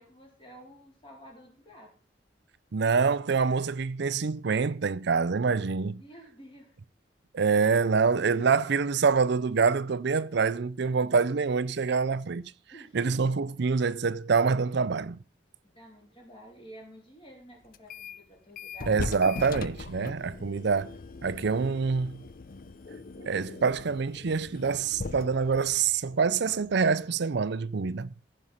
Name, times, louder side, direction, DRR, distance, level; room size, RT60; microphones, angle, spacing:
voice 1, 0.0-1.9 5.9-6.8 12.7-13.0 15.6-19.0, equal, 30° left, 4.0 m, -51 dB
voice 2, 2.7-6.0 7.3-12.5 12.9-15.2 18.9-21.0 21.2-22.2 23.2-28.1, right 5 dB, 65° right, 0.5 m, -26 dB
sound 1, 17.7-18.2 18.6-27.0, left 3 dB, 50° left, 0.6 m, -40 dB
14.5 x 5.6 x 5.7 m
head